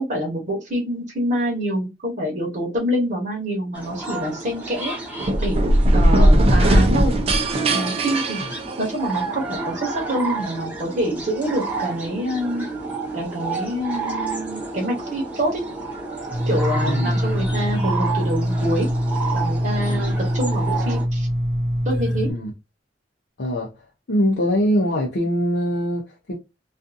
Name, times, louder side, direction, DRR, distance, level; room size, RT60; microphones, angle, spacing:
voice 1, 0.0-4.9 5.4-5.6 5.9-7.2 7.7-8.4 8.8-12.7 13.1-15.6 16.5-18.9 19.3-21.3 21.8-22.3, equal, 50° right, 1.0 m, -26 dB
sound 1, 3.7-21.0, right 3 dB, 10° right, 0.8 m, -31 dB
sound 2, 5.2-9.2, right 1 dB, 35° right, 0.4 m, -18 dB
sound 3, 16.3-22.3, equal, 90° right, 0.9 m, -23 dB
voice 2, 16.8-17.2 19.9-20.0 22.3-22.5 23.4-23.7 24.1-26.3, equal, 65° left, 0.6 m, -22 dB
2.5 x 2.4 x 2.5 m
head